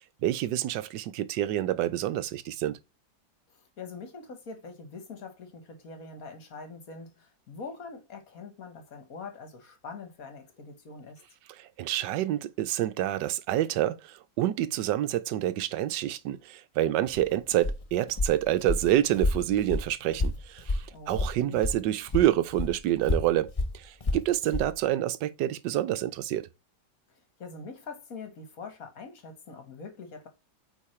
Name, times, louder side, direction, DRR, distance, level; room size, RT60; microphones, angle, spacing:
voice 1, 0.2-2.8 11.5-26.5, right 13 dB, 75° right, 1.2 m, -28 dB
voice 2, 3.8-11.2 20.9-21.6 27.4-30.3, left 4 dB, 55° left, 1.7 m, -43 dB
Walk footsteps, 17.0-21.8 22.1-24.7, left 2 dB, 25° left, 0.8 m, -31 dB
8.3 x 3.4 x 4.3 m
omnidirectional pair, 1.9 m